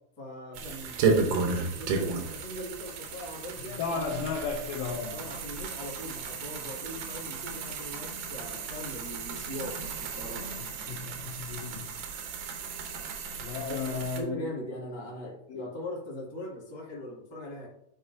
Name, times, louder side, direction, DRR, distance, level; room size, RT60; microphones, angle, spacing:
voice 1, 0.2-4.2 5.1-10.5 13.6-17.7, left 1 dB, 35° left, 0.4 m, -40 dB
sound 1, 0.5-14.2, right 4 dB, 90° right, 2.5 m, -34 dB
voice 2, 3.6-5.2 10.6-11.9 13.4-14.5 15.5-15.7, left 5 dB, 85° left, 1.5 m, -34 dB
9.8 x 3.9 x 2.6 m
omnidirectional pair, 3.7 m